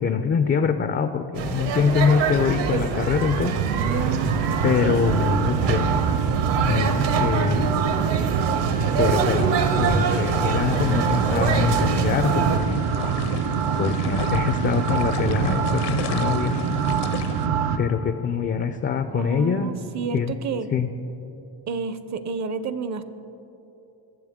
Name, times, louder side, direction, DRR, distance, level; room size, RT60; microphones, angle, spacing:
voice 1, 0.0-3.6 4.6-6.0 6.7-7.7 9.0-12.8 13.8-16.6 17.8-19.7 20.1-20.3 20.7-20.9, left 6 dB, 30° left, 9 dB, 0.3 m, -24 dB
sound 1, 1.3-12.6, right 5 dB, 65° right, 1.1 m, -26 dB
sound 2, 1.9-17.8, right 6 dB, 85° right, 0.8 m, -25 dB
sound 3, 9.6-17.5, left 10 dB, 60° left, 0.6 m, -37 dB
voice 2, 19.1-20.7 21.7-23.0, right 5 dB, 40° right, 12 dB, 0.6 m, -30 dB
21.5 x 7.3 x 3.6 m, 3.0 s
cardioid pair, 115°, 46 cm